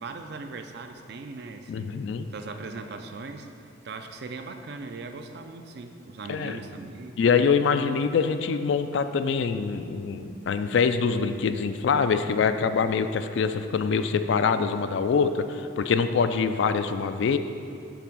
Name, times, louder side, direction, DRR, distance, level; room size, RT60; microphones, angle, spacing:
voice 1, 0.0-2.0 2.3-3.5 3.8-7.2, right 3 dB, 55° right, 7 dB, 0.5 m, -39 dB
voice 2, 1.7-2.3 6.3-6.6 7.2-17.4, left 5 dB, 65° left, 10 dB, 0.3 m, -24 dB
8.1 x 3.4 x 6.1 m, 2.5 s
head